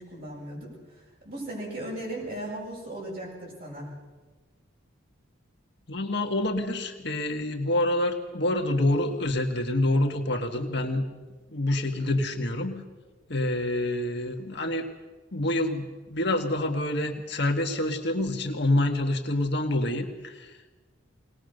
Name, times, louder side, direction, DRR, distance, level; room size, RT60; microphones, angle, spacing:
voice 1, 0.0-3.9, right 1 dB, 45° right, -4 dB, 7.4 m, -37 dB
voice 2, 5.9-11.0 11.5-12.8 13.3-14.9 15.3-20.7, left 1 dB, 55° left, 3 dB, 1.6 m, -27 dB
21.5 x 19.0 x 6.6 m, 1.3 s
head